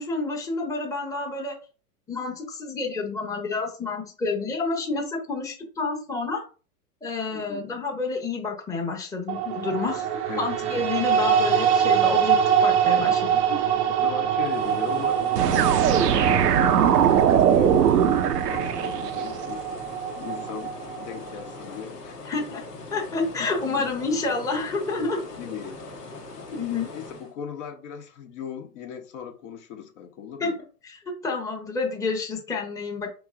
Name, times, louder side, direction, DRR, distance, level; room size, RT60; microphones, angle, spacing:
voice 1, 0.0-1.6 2.1-6.4 7.0-13.4 22.3-22.6 22.9-25.2 26.5-26.9 30.4-30.5 30.8-33.1, left 3 dB, 5° left, 0.9 m, -29 dB
voice 2, 7.3-7.6 10.3-10.5 14.0-19.7 20.2-22.2 23.4-23.5 23.7-23.9 25.4-25.9 26.9-30.6, left 7 dB, 50° left, 1.1 m, -38 dB
sound 1, 9.3-21.5, right 8 dB, 25° right, 0.5 m, -24 dB
sound 2, 14.4-27.3, left 3 dB, 90° left, 1.3 m, -40 dB
sound 3, 15.4-19.3, right 9 dB, 85° right, 0.6 m, -20 dB
4.6 x 3.0 x 3.7 m
hypercardioid pair, 110°, 46 cm